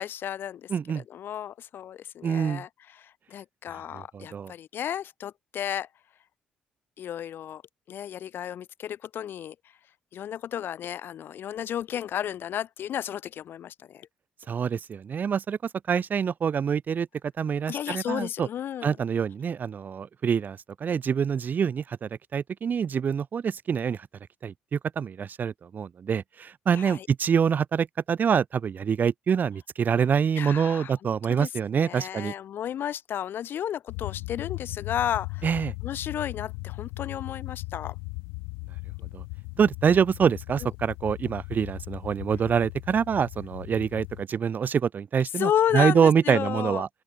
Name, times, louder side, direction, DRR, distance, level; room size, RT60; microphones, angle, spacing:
voice 1, 0.0-0.7 0.9-5.9 7.0-7.6 7.9-9.6 10.1-14.1 17.7-19.0 26.7-27.1 30.4-31.5 31.8-35.5 35.8-38.0 40.6-40.7 45.4-46.9, left 10 dB, 60° left, 2.0 m, -32 dB
voice 2, 0.7-1.0 2.2-2.6 3.9-4.5 14.5-15.6 15.9-17.1 17.4-18.5 18.8-24.1 24.4-32.3 35.4-35.7 39.1-39.2 39.6-46.9, right 7 dB, 45° right, 0.8 m, -26 dB
sound 1, 33.9-44.2, left 39 dB, 80° left, 1.7 m, -38 dB
open air
hypercardioid pair, 50°, 4 cm